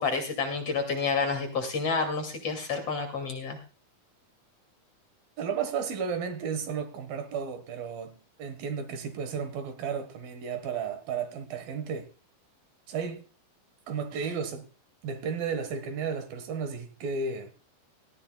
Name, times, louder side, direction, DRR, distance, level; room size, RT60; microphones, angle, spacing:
voice 1, 0.0-3.6, left 4 dB, 45° left, 3.2 m, -29 dB
voice 2, 5.4-12.1 12.9-13.2 13.9-14.7 15.0-17.5, right 6 dB, 70° right, 3.2 m, -33 dB
18.5 x 14.5 x 2.3 m
omnidirectional pair, 4.4 m